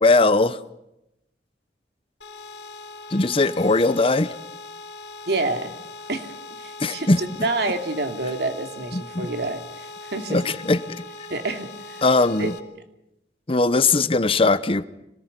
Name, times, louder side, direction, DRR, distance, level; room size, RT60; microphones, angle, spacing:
voice 1, 0.0-0.6 3.1-4.3 6.8-7.2 8.9-9.3 10.3-11.0 12.0-12.5 13.5-14.9, left 3 dB, 30° left, 14 dB, 0.9 m, -20 dB
sound 1, 2.2-12.6, left 3 dB, 70° left, 3.1 m, -40 dB
voice 2, 5.3-5.8 6.1-6.3 6.6-10.5 11.3-12.0 12.4-12.5, right 2 dB, 60° right, 6 dB, 2.8 m, -28 dB
26.0 x 18.5 x 9.8 m, 0.88 s
head